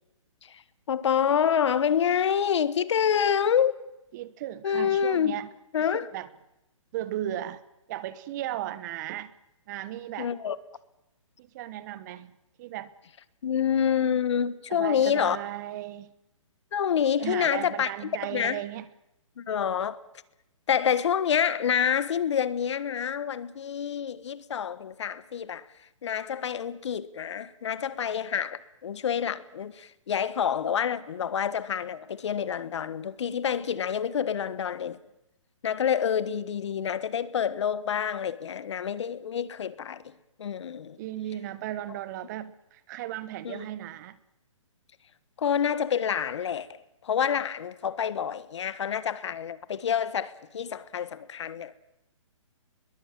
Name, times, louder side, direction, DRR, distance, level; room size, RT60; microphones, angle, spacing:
voice 1, 0.9-3.7 4.6-5.4 5.7-6.1 10.2-10.6 13.4-15.4 16.7-18.6 19.4-20.0 20.7-25.6 26.0-35.0 35.6-41.0 43.4-43.6 45.4-51.7, left 8 dB, 60° left, 1.5 m, -27 dB
voice 2, 4.1-5.5 5.9-6.3 6.9-7.6 7.9-9.3 9.7-10.3 11.4-12.9 14.7-16.1 17.2-18.8 41.0-44.2, right 13 dB, 35° right, 1.1 m, -36 dB
22.0 x 21.5 x 7.6 m
hypercardioid pair, 145°, 17 cm